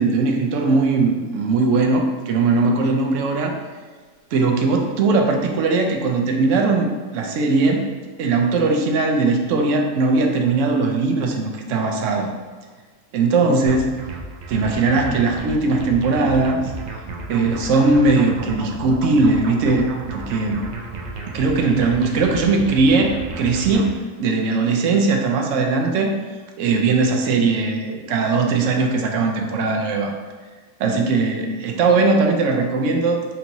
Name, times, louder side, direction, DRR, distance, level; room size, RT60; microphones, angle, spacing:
voice 1, 0.0-3.6 4.3-7.9 8.2-12.3 13.1-14.0 14.5-16.7 17.1-20.7 21.3-23.9 24.2-26.2 26.6-30.1 30.8-33.2, right 3 dB, 75° right, 3 dB, 0.9 m, -19 dB
sound 1, 13.7-24.0, right 2 dB, 90° right, 0.3 m, -33 dB
4.3 x 2.9 x 2.6 m, 1.4 s
omnidirectional pair, 1.3 m